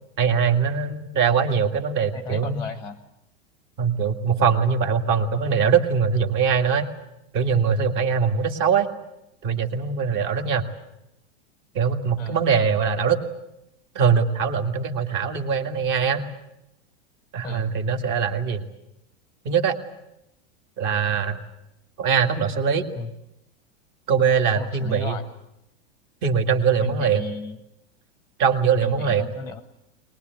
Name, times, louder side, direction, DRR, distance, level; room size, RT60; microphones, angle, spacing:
voice 1, 0.2-2.6 3.8-6.9 7.3-8.9 9.4-10.6 11.7-13.2 14.0-16.2 17.3-18.6 19.5-19.8 20.8-21.4 22.0-22.9 24.1-25.2 26.2-27.2 28.4-29.3, right 6 dB, 35° right, 6 dB, 2.0 m, -22 dB
voice 2, 2.1-3.0 12.2-12.4 17.4-17.7 23.0-23.1 24.5-25.2 26.8-27.6 28.8-29.6, left 4 dB, 5° left, 10 dB, 1.0 m, -34 dB
23.0 x 20.5 x 9.3 m, 0.86 s
supercardioid pair, 155°, 34 cm